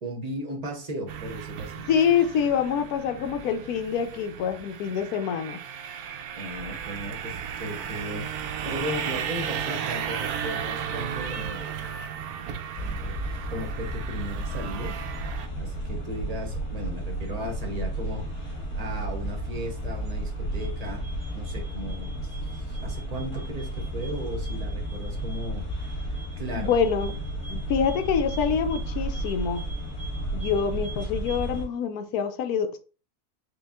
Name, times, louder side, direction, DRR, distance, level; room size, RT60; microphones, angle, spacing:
voice 1, 0.0-1.8 6.4-8.3 8.6-11.6 12.8-13.2 13.5-14.9 15.6-25.7 26.4-26.7, equal, 30° right, 0.8 m, -36 dB
sound 1, 1.1-15.5, right 8 dB, 80° right, 1.1 m, -35 dB
voice 2, 1.9-5.6 26.5-27.2 27.5-29.6 30.3-32.8, left 7 dB, 80° left, 1.1 m, -26 dB
sound 2, 12.8-31.6, right 1 dB, 40° left, 1.9 m, -33 dB
4.8 x 2.3 x 3.5 m
omnidirectional pair, 1.6 m